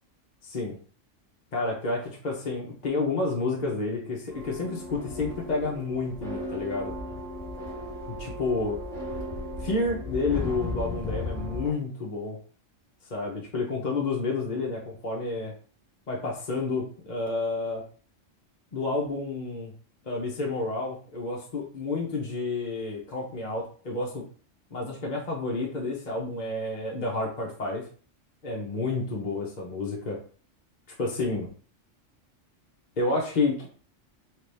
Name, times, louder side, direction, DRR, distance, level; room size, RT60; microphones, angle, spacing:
voice 1, 0.4-0.8 1.5-6.9 8.2-8.8 9.6-12.4 13.1-15.5 16.1-17.8 18.7-19.7 20.0-24.2 24.7-27.8 28.4-30.2 31.0-31.5 33.0-33.7, left 3 dB, 40° left, -2 dB, 0.8 m, -30 dB
sound 1, 4.3-11.7, left 2 dB, 5° left, 1.4 m, -35 dB
4.5 x 2.5 x 3.3 m, 0.42 s
omnidirectional pair, 1.3 m